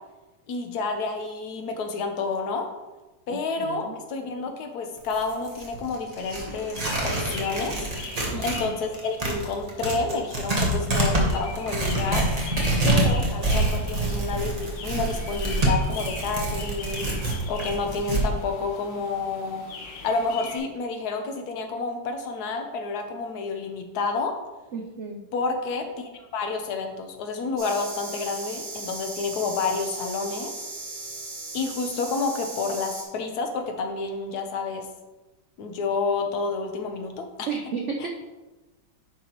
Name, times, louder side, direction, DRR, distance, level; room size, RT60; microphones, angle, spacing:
voice 1, 0.5-2.7 3.3-7.7 8.4-12.3 12.8-19.7 20.0-24.3 25.3-30.5 31.5-34.9 35.6-37.5, left 4 dB, 60° left, 4 dB, 1.3 m, -29 dB
voice 2, 3.3-4.0 8.3-8.8 24.7-25.2 37.5-38.2, right 5 dB, 85° right, 1 dB, 0.6 m, -33 dB
Tearing, 5.0-8.6 8.9-18.3, right 2 dB, 25° right, 1.1 m, -26 dB
sound 1, 6.2-20.6, left 4 dB, 85° left, 1.9 m, -41 dB
sound 2, 27.6-33.0, right 2 dB, 65° right, 2.4 m, -37 dB
9.2 x 5.7 x 3.0 m, 1.1 s
omnidirectional pair, 2.0 m